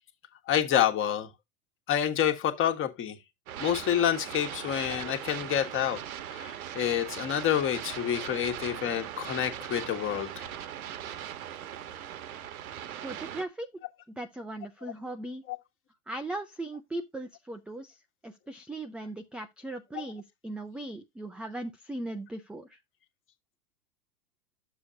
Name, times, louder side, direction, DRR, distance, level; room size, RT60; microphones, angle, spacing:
voice 1, 0.5-1.3 1.9-3.2 3.6-6.0 6.3-10.5 20.0-20.1, left 10 dB, 30° left, 1.5 m, -28 dB
sound 1, 3.5-13.4, right 10 dB, 80° right, 1.2 m, -40 dB
voice 2, 13.0-13.7 14.2-15.4 16.1-18.0 18.2-22.8, right 2 dB, 5° right, 0.4 m, -38 dB
9.9 x 7.0 x 2.6 m
hypercardioid pair, 120°, 43 cm